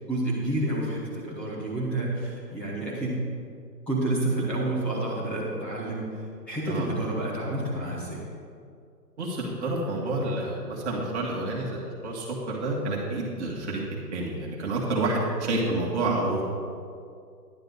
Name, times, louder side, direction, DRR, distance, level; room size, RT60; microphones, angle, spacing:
voice 1, 0.1-3.2 3.9-6.0 6.5-8.2, right 1 dB, 5° left, -8 dB, 0.8 m, -29 dB
voice 2, 9.2-13.8 14.1-16.4, right 2 dB, 40° right, -4 dB, 1.9 m, -29 dB
11.0 x 11.0 x 4.0 m, 2.3 s
hypercardioid pair, 155°, 50 cm